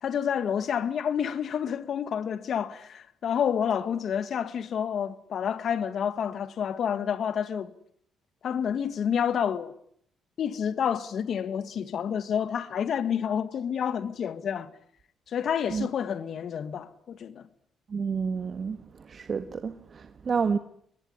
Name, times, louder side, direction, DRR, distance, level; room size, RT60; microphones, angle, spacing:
voice 1, 0.0-7.7 8.4-9.7 10.4-14.7 15.3-17.4, left 8 dB, 60° left, 1.7 m, -29 dB
voice 2, 17.9-18.8 19.1-20.6, right 5 dB, 45° right, 1.4 m, -29 dB
23.0 x 21.5 x 9.6 m
cardioid pair, 100°, 0 cm